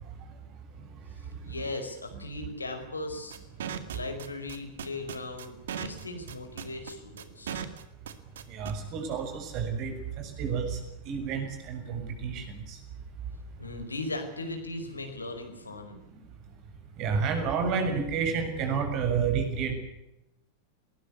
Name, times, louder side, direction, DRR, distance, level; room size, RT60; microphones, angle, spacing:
voice 1, 1.4-3.4 3.9-7.7 13.6-16.0, left 2 dB, 80° left, 6 dB, 4.7 m, -38 dB
sound 1, 3.3-8.7, right 8 dB, 60° right, 2.1 m, -37 dB
voice 2, 8.5-10.8 11.0-12.8 17.0-19.7, right 6 dB, 40° right, 5 dB, 6.9 m, -30 dB
21.5 x 20.0 x 8.2 m, 0.85 s
figure-of-eight pair, 90°, 0 cm